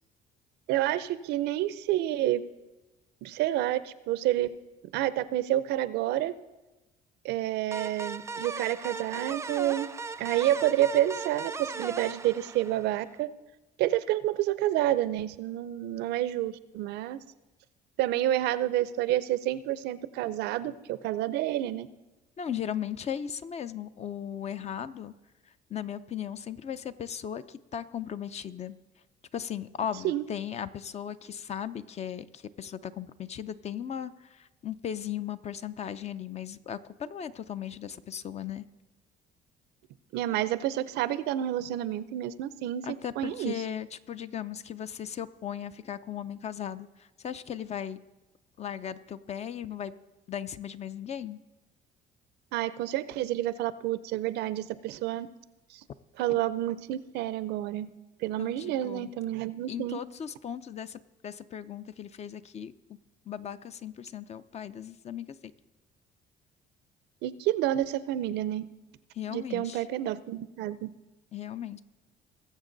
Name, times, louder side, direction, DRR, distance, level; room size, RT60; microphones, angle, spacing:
voice 1, 0.7-2.5 3.2-4.5 4.9-6.3 7.2-9.9 10.2-13.3 13.8-17.2 18.0-21.9 30.0-30.2 40.1-43.6 52.5-55.3 56.2-57.9 58.2-60.0 67.2-68.6 69.3-70.9, right 13 dB, 85° right, 16 dB, 0.6 m, -29 dB
sound 1, 7.7-13.1, right 4 dB, 15° right, 0.4 m, -38 dB
voice 2, 22.4-25.1 25.7-28.8 29.3-38.6 42.8-48.0 48.6-49.9 50.3-51.4 58.4-59.1 59.7-62.7 63.3-65.5 69.1-69.9 71.3-71.8, left 9 dB, 40° left, 14 dB, 0.5 m, -37 dB
20.0 x 7.4 x 3.9 m, 1.1 s
cardioid pair, 110°, 17 cm